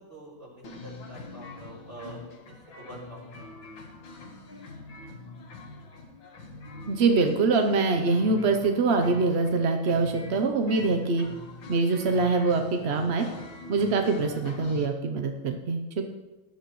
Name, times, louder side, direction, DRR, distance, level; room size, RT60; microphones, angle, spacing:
voice 1, 0.0-2.2 2.7-3.5, right 1 dB, 30° right, -4 dB, 4.3 m, -45 dB
sound 1, 0.6-14.9, left 3 dB, 85° left, 2.3 m, -44 dB
voice 2, 6.9-11.3 11.7-13.3 13.7-16.1, right 3 dB, 55° right, 4 dB, 0.7 m, -24 dB
18.5 x 11.5 x 3.1 m, 1.1 s
omnidirectional pair, 2.0 m